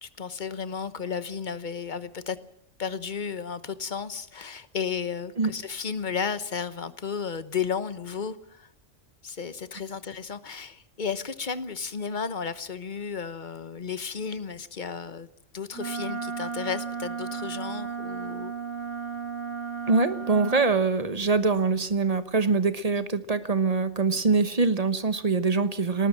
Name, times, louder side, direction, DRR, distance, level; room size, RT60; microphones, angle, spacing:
voice 1, 0.0-2.4 2.8-8.7 9.2-18.5 23.0-23.1, left 6 dB, 40° left, 13 dB, 1.2 m, -33 dB
Wind instrument woodwind instrument, 15.7-20.7, right 6 dB, 75° right, 2.8 m, -34 dB
voice 2, 19.9-26.1, right 4 dB, 30° right, 12 dB, 1.1 m, -24 dB
19.5 x 19.0 x 7.6 m, 0.68 s
omnidirectional pair, 1.3 m